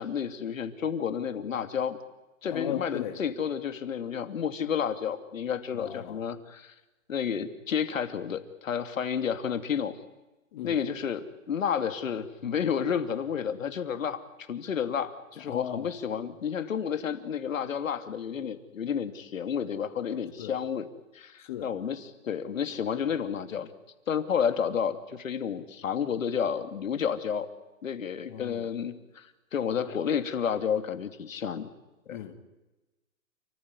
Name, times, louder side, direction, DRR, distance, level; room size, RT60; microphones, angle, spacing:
voice 1, 0.0-2.0 2.4-6.7 7.1-10.0 10.6-14.2 14.5-20.9 21.1-23.7 24.1-27.5 27.8-31.7 32.1-32.2, left 7 dB, 70° left, 9 dB, 3.0 m, -31 dB
voice 2, 2.5-3.1 5.8-6.2 10.5-10.8 15.5-15.9 20.4-20.5 21.5-21.7 28.3-28.6 32.1-32.4, left 11 dB, 35° left, 6 dB, 2.9 m, -36 dB
29.5 x 15.5 x 9.9 m, 1.0 s
hypercardioid pair, 160°, 41 cm